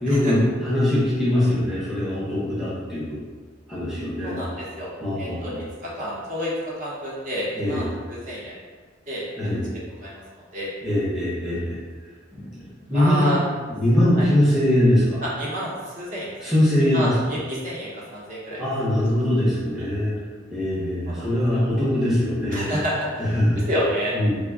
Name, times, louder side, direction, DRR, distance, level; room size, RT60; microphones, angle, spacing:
voice 1, 0.0-3.2 3.7-4.4 5.0-5.6 7.6-7.9 9.4-9.6 10.8-11.8 12.3-12.6 12.9-13.3 13.7-15.2 16.4-17.2 18.6-20.2 20.5-22.7 23.2-23.6 24.1-24.3, left 1 dB, ahead, -9 dB, 0.6 m, -22 dB
voice 2, 4.2-4.9 5.2-5.5 5.8-8.5 9.1-9.6 10.0-10.7 11.5-11.6 12.9-13.4 14.2-14.3 15.2-16.5 16.9-18.7 19.8-19.9 20.2-20.3 21.1-21.6 22.5-23.4 23.7-24.2, equal, 40° right, -6 dB, 0.7 m, -30 dB
3.3 x 2.1 x 3.5 m, 1.5 s
head